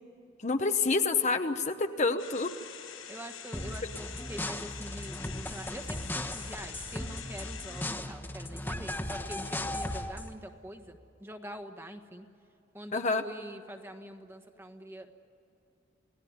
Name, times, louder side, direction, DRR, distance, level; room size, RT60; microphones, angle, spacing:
voice 1, 0.4-2.5 12.9-13.2, left 4 dB, 35° left, 6 dB, 0.9 m, -27 dB
sound 1, 2.2-7.8, left 8 dB, 85° left, 6.1 m, -46 dB
voice 2, 3.1-12.3 12.7-15.1, equal, 10° right, 6 dB, 1.4 m, -45 dB
sound 2, 3.5-10.3, left 1 dB, 10° left, 1.3 m, -37 dB
29.0 x 18.0 x 9.6 m, 2.9 s
head